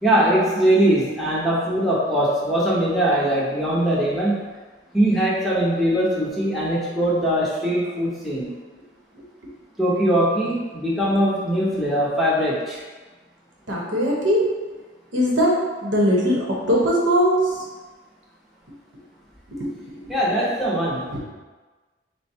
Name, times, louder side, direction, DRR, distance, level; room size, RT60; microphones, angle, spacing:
voice 1, 0.0-4.4 4.9-8.5 9.8-12.8 20.1-21.1, right 1 dB, ahead, -8 dB, 0.8 m, -21 dB
voice 2, 9.1-9.5 13.7-14.5 15.1-17.6 19.5-20.4 21.1-21.2, equal, 70° right, -3 dB, 0.9 m, -21 dB
3.8 x 2.2 x 4.3 m, 1.3 s
head